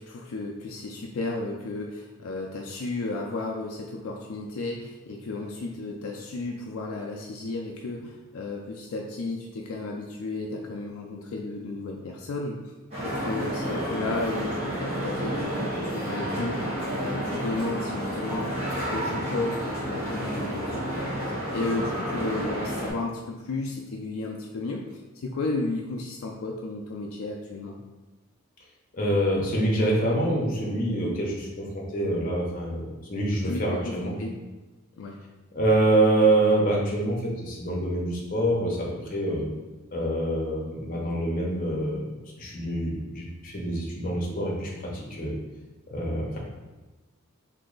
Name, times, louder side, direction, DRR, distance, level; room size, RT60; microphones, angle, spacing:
voice 1, 0.0-12.6 13.0-16.6 16.9-24.8 25.2-27.8 33.4-34.3 35.0-35.1, left 2 dB, 70° left, 0 dB, 0.4 m, -33 dB
sound 1, 12.9-22.9, equal, 30° right, 1.1 m, -30 dB
voice 2, 29.0-34.1 35.5-39.5 39.9-42.0 42.4-45.3 45.9-46.4, right 1 dB, 40° left, -3 dB, 0.7 m, -26 dB
3.0 x 2.7 x 3.8 m, 1.2 s
head